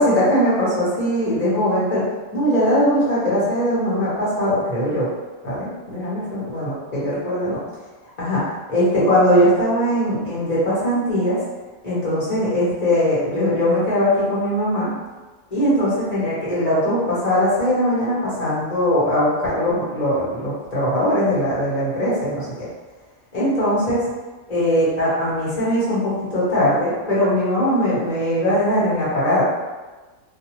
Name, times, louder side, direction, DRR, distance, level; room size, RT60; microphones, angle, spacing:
voice 1, 0.0-2.0 2.3-5.1 5.4-7.6 8.2-11.4 11.8-14.9 15.5-22.7 23.3-24.0 24.5-26.0 26.3-29.4, equal, 35° left, -9 dB, 1.1 m, -20 dB
2.4 x 2.3 x 3.0 m, 1.3 s
omnidirectional pair, 1.3 m